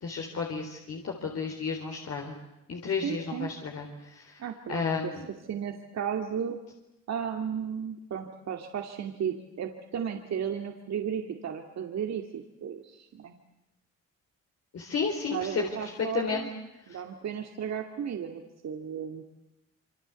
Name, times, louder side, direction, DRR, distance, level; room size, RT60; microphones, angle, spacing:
voice 1, 0.0-2.3 2.7-4.4 4.7-5.3 14.7-16.4 16.9-17.0, left 5 dB, 55° left, 1 dB, 4.1 m, -32 dB
voice 2, 3.0-3.5 4.4-5.1 5.5-6.6 7.1-13.4 15.3-16.5 16.9-19.2, right 8 dB, 60° right, 4 dB, 2.4 m, -34 dB
27.0 x 24.5 x 8.3 m, 0.93 s
cardioid pair, 90°, 30 cm